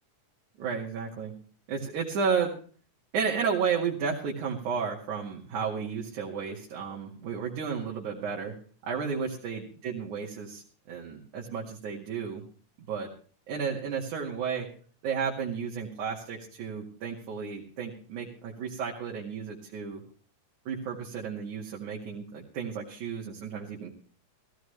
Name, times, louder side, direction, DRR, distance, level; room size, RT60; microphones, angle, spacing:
voice 1, 0.6-1.3 1.7-2.5 3.1-8.5 8.8-12.4 12.9-13.1 13.5-14.7 15.0-20.0 20.7-23.9, right 6 dB, 70° right, -3 dB, 3.6 m, -32 dB
16.5 x 15.5 x 3.3 m, 0.42 s
omnidirectional pair, 3.7 m